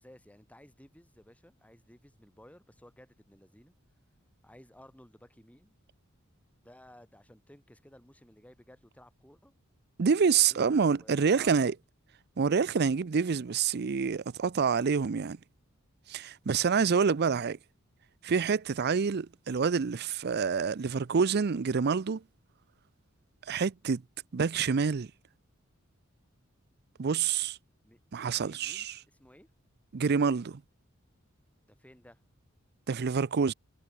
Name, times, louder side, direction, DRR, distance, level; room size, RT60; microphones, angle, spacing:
voice 1, 0.0-3.7 4.4-5.7 6.6-9.5 10.2-11.7 27.8-28.0 28.4-29.5 31.7-32.2, equal, 5° left, 6.9 m, -56 dB
voice 2, 10.0-11.7 12.4-15.4 16.1-17.6 18.2-22.2 23.5-24.0 24.3-25.1 27.0-27.6 28.1-28.9 29.9-30.6 32.9-33.5, right 5 dB, 50° right, 0.5 m, -27 dB
head